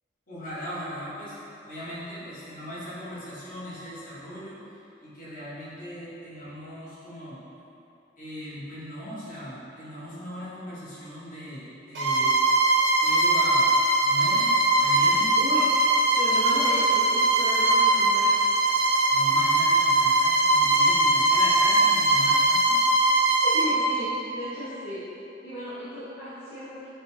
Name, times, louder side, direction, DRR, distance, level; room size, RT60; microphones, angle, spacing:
voice 1, 0.3-1.3 1.6-4.6 5.0-7.4 8.2-12.4 13.0-13.7 14.0-15.4 19.1-22.8, equal, 45° left, -10 dB, 1.3 m, -38 dB
Bowed string instrument, 11.9-23.8, right 2 dB, 80° right, 0.7 m, -21 dB
voice 2, 15.4-15.7 16.2-18.3 23.4-25.0 25.4-26.9, left 1 dB, 65° left, -12 dB, 0.8 m, -35 dB
6.5 x 2.2 x 3.2 m, 2.8 s
head